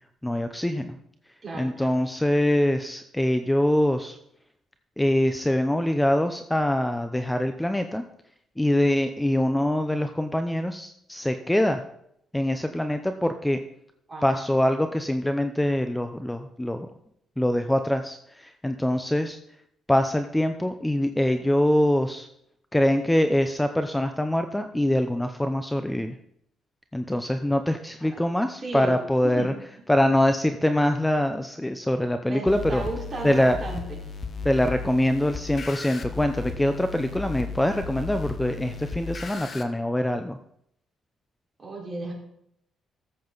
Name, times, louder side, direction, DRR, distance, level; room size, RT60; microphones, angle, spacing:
voice 1, 0.2-1.0 1.5-4.2 5.0-8.0 8.6-11.8 12.3-13.6 14.2-16.9 17.4-19.4 19.9-22.3 22.7-26.2 26.9-29.5 29.9-32.8 33.2-33.6 34.4-40.4, left 1 dB, 5° left, 8 dB, 0.7 m, -24 dB
voice 2, 1.4-1.9 14.1-14.4 28.0-28.2 28.6-28.9 29.2-29.5 32.2-34.0 41.6-42.1, right 2 dB, 30° right, -3 dB, 4.6 m, -34 dB
sound 1, 32.5-39.6, left 4 dB, 45° left, 1.1 m, -35 dB
14.0 x 7.7 x 4.0 m, 0.74 s
cardioid pair, 90°, 0 cm